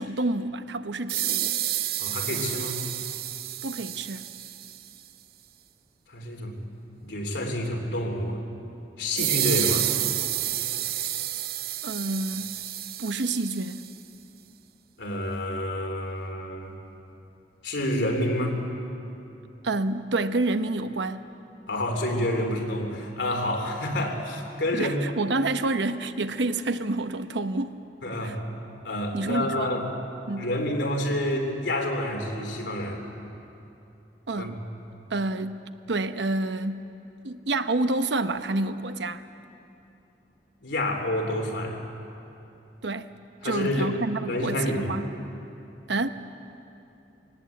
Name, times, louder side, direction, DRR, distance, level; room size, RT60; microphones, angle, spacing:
voice 1, 0.0-1.5 3.6-4.3 11.8-12.6 13.0-13.9 19.6-21.3 24.7-27.8 28.2-28.4 29.1-29.7 30.3-30.5 34.3-34.6 35.1-35.6 35.9-36.8 37.2-39.2 42.8-43.1 43.4-45.1 45.9-46.1, right 2 dB, 85° right, 10 dB, 0.9 m, -28 dB
sound 1, 1.1-4.9 9.2-13.9, right 13 dB, 60° right, 0.6 m, -30 dB
voice 2, 2.0-2.8 6.1-6.6 7.0-8.4 9.0-9.9 15.0-16.7 17.6-18.6 21.7-25.0 28.0-28.4 28.8-29.8 30.4-33.0 34.4-34.5 40.6-41.8 43.4-44.0 44.3-45.1, left 1 dB, 85° left, 2 dB, 3.4 m, -28 dB
22.5 x 18.5 x 8.4 m, 2.8 s
head